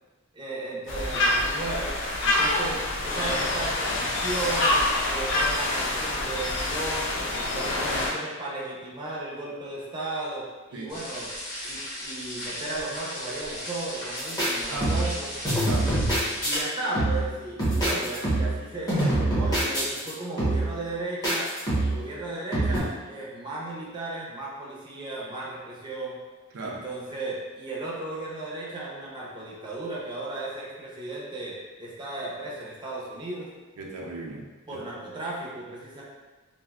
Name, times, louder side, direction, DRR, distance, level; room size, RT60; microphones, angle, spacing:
voice 1, 0.3-1.9 2.2-7.3 7.5-11.3 11.6-15.3 16.1-21.5 21.8-26.2 26.6-33.5 34.7-36.0, right 2 dB, 20° right, -5 dB, 0.6 m, -35 dB
sound 1, 0.9-8.1, left 2 dB, 60° left, 0.4 m, -26 dB
sound 2, 10.9-16.5, equal, 40° left, 1.3 m, -37 dB
sound 3, 14.2-14.5 14.8-15.2 15.4-16.6 16.9-17.3 17.6-18.6 18.9-20.1 20.4-20.8 21.2-22.0 22.5-22.8, right 1 dB, 15° left, 0.9 m, -25 dB
voice 2, 15.6-16.0 22.1-22.2 26.5-26.8 33.8-34.8, right 2 dB, 75° right, -1 dB, 0.5 m, -37 dB
3.3 x 2.6 x 2.3 m, 1.3 s
head